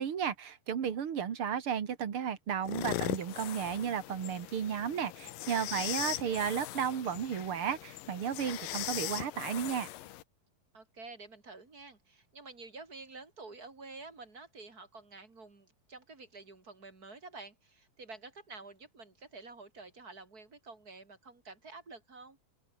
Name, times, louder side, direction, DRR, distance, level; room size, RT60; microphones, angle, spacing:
voice 1, 0.0-9.9, right 8 dB, 45° right, 2.3 m, -34 dB
sound 1, 2.6-10.2, left 15 dB, 80° left, 2.7 m, -40 dB
voice 2, 5.7-6.4 10.7-22.4, right 3 dB, 25° right, 3.5 m, -50 dB
open air
omnidirectional pair, 3.9 m